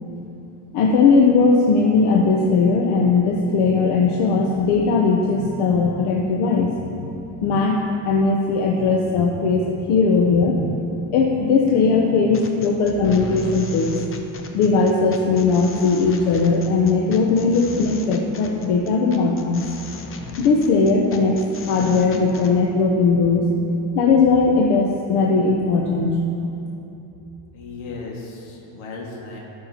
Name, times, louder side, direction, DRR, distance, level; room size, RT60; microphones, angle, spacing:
voice 1, 0.7-6.7 7.0-7.1 7.4-10.8 11.1-14.0 14.5-19.6 20.4-21.4 21.7-23.4 23.9-26.2, left 4 dB, 90° left, -1 dB, 0.9 m, -18 dB
sound 1, 12.3-22.5, left 4 dB, 25° left, 0.6 m, -37 dB
voice 2, 27.5-29.4, left 3 dB, 70° left, -3 dB, 1.9 m, -35 dB
16.0 x 5.7 x 2.9 m, 3.0 s
cardioid pair, 140°, 49 cm